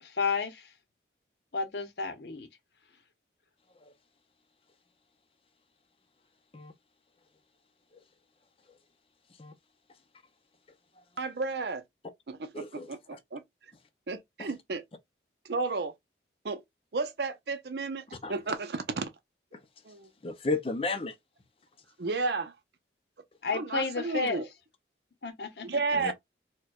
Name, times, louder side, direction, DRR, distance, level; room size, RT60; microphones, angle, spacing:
voice 1, 0.0-0.7 1.5-2.5 23.4-24.4 25.2-25.7, left 4 dB, 70° left, 0.8 m, -31 dB
voice 2, 11.2-11.8 12.3-13.4 14.1-14.8 15.4-15.9 16.4-16.6 16.9-19.1 19.8-20.1 22.0-22.5 23.5-24.5 25.6-26.1, right 3 dB, 65° right, 0.6 m, -32 dB
voice 3, 12.5-13.2 18.2-18.3 20.2-21.2 26.0-26.1, left 3 dB, 30° left, 0.5 m, -33 dB
4.5 x 2.2 x 2.3 m
head